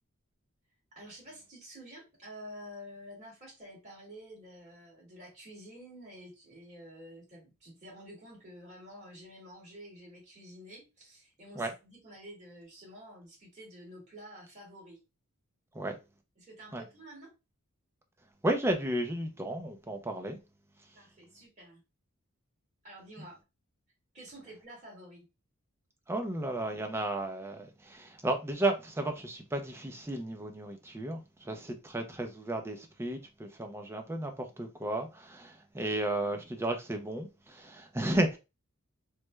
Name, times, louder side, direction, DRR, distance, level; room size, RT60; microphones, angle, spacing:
voice 1, 1.0-15.0 16.4-17.3 20.9-21.8 22.8-23.4 24.1-25.3, equal, 30° right, 1.9 m, -49 dB
voice 2, 18.4-20.4 26.1-38.4, right 1 dB, 10° right, 0.4 m, -33 dB
3.2 x 2.1 x 3.1 m
head